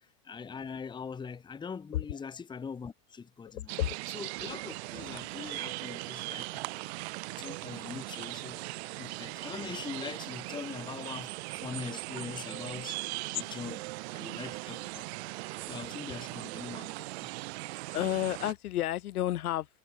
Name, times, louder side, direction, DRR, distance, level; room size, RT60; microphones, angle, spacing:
voice 1, 0.2-3.7 4.1-6.6 7.3-8.6 8.9-13.0 13.3-13.8 14.1-15.1 15.7-17.3, left 6 dB, 10° left, 1.6 m, -42 dB
voice 2, 3.5-4.0 17.9-19.7, left 13 dB, 85° left, 1.9 m, -31 dB
sound 1, 3.7-18.5, right 24 dB, 50° right, 1.0 m, -39 dB
supercardioid pair, 155°, 43 cm